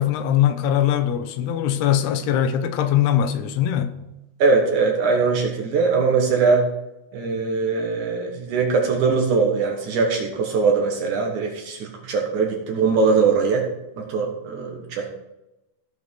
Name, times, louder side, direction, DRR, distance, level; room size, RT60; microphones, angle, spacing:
voice 1, 0.0-3.9, left 10 dB, 85° left, 2.9 m, -21 dB
voice 2, 4.4-6.7 7.1-13.7 14.0-15.1, right 4 dB, 60° right, 2.4 m, -21 dB
16.0 x 5.8 x 4.6 m
omnidirectional pair, 4.5 m